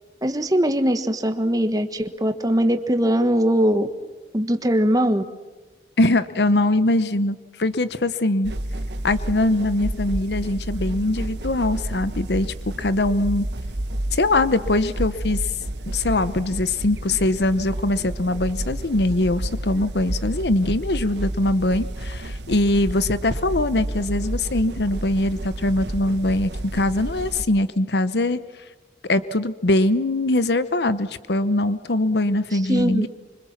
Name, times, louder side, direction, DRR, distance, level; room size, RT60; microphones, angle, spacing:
voice 1, 0.2-3.9 4.3-5.2 32.5-33.1, equal, 20° right, 9 dB, 1.4 m, -21 dB
voice 2, 6.0-8.5 9.0-12.5 12.8-13.4 14.1-15.4 15.9-28.4 29.1-33.1, left 2 dB, 75° left, 14 dB, 0.9 m, -22 dB
sound 1, 8.4-27.4, right 1 dB, 80° right, 1.2 m, -30 dB
26.0 x 25.0 x 7.3 m, 1.2 s
head